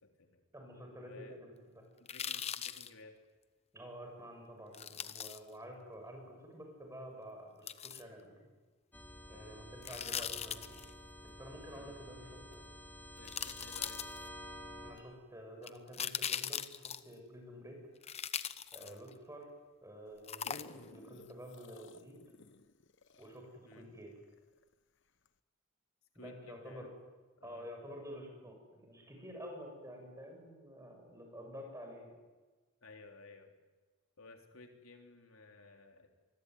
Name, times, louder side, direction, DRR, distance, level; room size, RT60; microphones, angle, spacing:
voice 1, 0.0-0.4 1.0-1.4 2.0-3.2 9.3-9.5 11.7-11.9 13.2-14.0 18.8-19.1 23.6-23.9 26.1-26.9 27.4-27.7 32.8-33.5 34.2-36.1, left 3 dB, 80° left, 4 dB, 3.5 m, -56 dB
voice 2, 0.5-1.8 3.7-8.5 9.3-10.8 11.2-12.7 14.8-17.8 18.7-19.5 19.8-22.2 23.2-24.1 26.2-26.9 27.4-32.1, equal, 15° right, 2 dB, 7.4 m, -50 dB
sound 1, 2.1-2.9 4.7-5.4 7.7-8.0 9.8-10.9 12.5-12.6 13.2-14.4 15.6-17.1 18.0-19.1 20.3-21.0 21.3-21.4, left 8 dB, 30° left, 0.9 m, -40 dB
sound 2, 8.9-14.9, equal, 10° left, 3.7 m, -50 dB
sound 3, 20.1-24.7 25.3-25.4, left 3 dB, 60° left, 1.1 m, -56 dB
25.0 x 22.0 x 9.5 m, 1.3 s
head